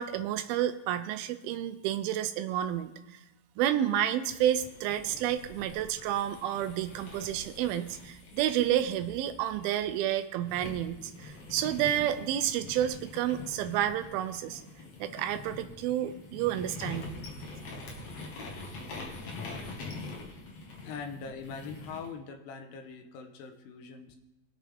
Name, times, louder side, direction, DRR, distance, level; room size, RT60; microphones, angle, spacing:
voice 1, 0.0-3.2 3.6-14.6 15.0-17.2, right 11 dB, 85° right, 9 dB, 2.6 m, -30 dB
sound 1, 4.6-10.0 10.5-22.1, left 2 dB, 55° left, 2.6 m, -44 dB
voice 2, 20.8-24.2, left 5 dB, 80° left, 6 dB, 2.6 m, -42 dB
21.5 x 7.4 x 3.5 m, 0.98 s
omnidirectional pair, 4.3 m